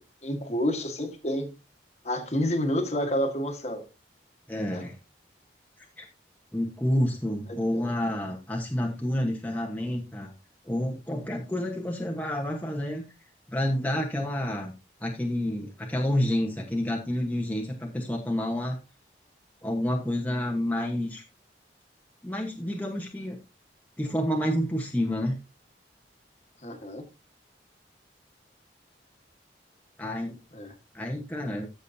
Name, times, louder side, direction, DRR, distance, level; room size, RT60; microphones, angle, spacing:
voice 1, 0.0-1.5 2.0-3.9 4.7-4.8 7.5-7.9 26.6-27.1 30.5-30.7, equal, 35° left, 1.5 m, -29 dB
voice 2, 4.5-5.0 6.0-6.1 6.5-10.3 10.6-13.0 13.5-14.7 15.0-18.8 19.6-21.2 22.2-23.4 24.0-25.4 30.0-30.4 30.9-31.7, left 1 dB, 10° left, 1.1 m, -29 dB
14.0 x 6.4 x 2.7 m
head